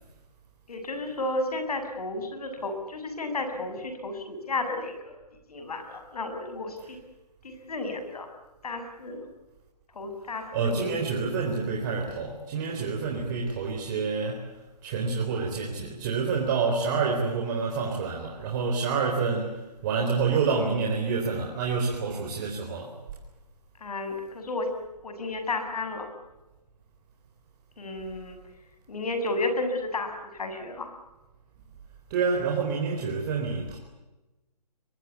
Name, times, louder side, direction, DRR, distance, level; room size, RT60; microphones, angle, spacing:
voice 1, 0.7-5.2 5.5-7.0 7.4-8.3 8.6-9.3 10.0-11.0 23.8-24.7 25.0-26.1 27.8-28.4 28.9-30.9, left 2 dB, 65° left, 7 dB, 7.6 m, -32 dB
voice 2, 10.5-14.5 14.8-23.0 32.1-33.8, right 5 dB, 30° right, 0 dB, 4.1 m, -28 dB
24.0 x 23.0 x 8.4 m, 1.0 s
hypercardioid pair, 155°, 21 cm